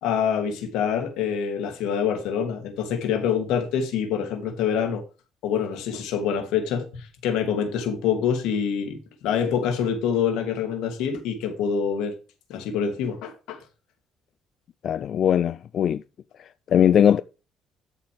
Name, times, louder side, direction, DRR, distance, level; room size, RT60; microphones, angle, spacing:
voice 1, 0.0-5.0 5.4-9.0 9.2-12.1 12.5-13.6, left 7 dB, 85° left, 2.7 m, -26 dB
voice 2, 14.8-16.0 16.7-17.2, left 9 dB, 45° left, 0.4 m, -19 dB
13.5 x 7.0 x 3.5 m
cardioid pair, 135°, 0 cm